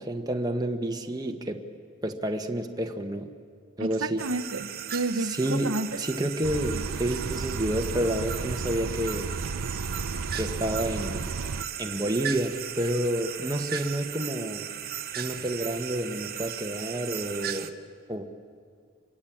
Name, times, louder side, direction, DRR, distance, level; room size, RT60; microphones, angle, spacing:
voice 1, 0.0-1.6 2.0-3.3 3.8-4.2 5.3-9.3 10.3-11.3 11.8-14.7 15.1-17.7 18.1-18.2, right 1 dB, 20° right, 4 dB, 1.3 m, -29 dB
voice 2, 3.8-6.0, right 2 dB, 70° right, 11 dB, 1.1 m, -31 dB
sound 1, 4.2-17.7, right 10 dB, 45° right, 1.0 m, -37 dB
sound 2, 6.4-11.6, right 4 dB, 85° right, 0.7 m, -33 dB
27.0 x 23.0 x 8.7 m, 2.1 s
head